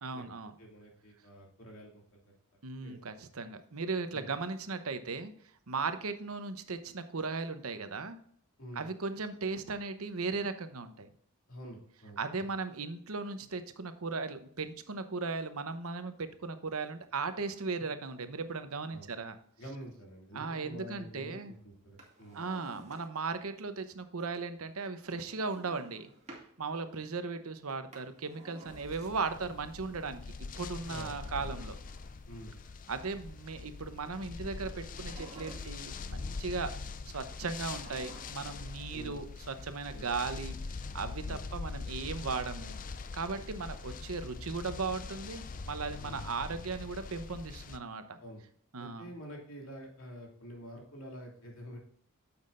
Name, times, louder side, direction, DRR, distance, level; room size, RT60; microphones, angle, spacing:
voice 1, 0.0-0.5 2.6-5.3 5.7-8.2 8.7-11.1 12.2-19.4 20.3-21.5 22.3-26.1 26.6-30.2 30.6-31.8 32.9-36.7 37.0-40.6 40.9-42.8 43.1-48.2 48.7-49.1, right 4 dB, 90° right, 9 dB, 0.9 m, -37 dB
voice 2, 0.6-2.4 2.8-3.0 4.1-4.3 8.6-8.8 11.5-12.4 18.9-19.1 19.6-22.4 30.9-31.5 32.3-32.6 38.9-39.2 39.9-40.1 41.3-41.4 43.2-43.4 46.0-46.2 48.2-48.4 48.8-51.8, equal, 70° left, -1 dB, 2.8 m, -48 dB
Drawer open or close, 21.8-23.4 25.0-26.5 27.7-29.5 30.7-32.4 34.8-36.1 37.5-38.6 38.9-39.0, right 1 dB, 30° right, 1.9 m, -53 dB
sound 1, 28.7-47.8, left 4 dB, 40° left, 0.4 m, -43 dB
9.6 x 7.2 x 2.6 m, 0.63 s
head